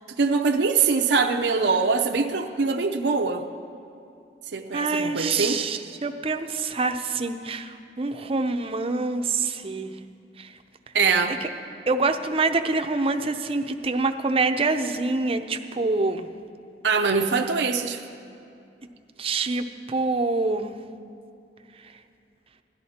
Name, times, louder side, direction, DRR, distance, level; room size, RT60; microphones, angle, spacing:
voice 1, 0.2-3.4 4.5-5.6 10.9-11.4 16.8-18.0, right 4 dB, 80° right, 5 dB, 0.6 m, -23 dB
voice 2, 4.7-9.9 10.4-10.5 11.4-11.5 11.9-16.3 19.2-20.7, right 3 dB, 35° right, 7 dB, 0.6 m, -26 dB
16.0 x 12.0 x 4.3 m, 2.6 s
head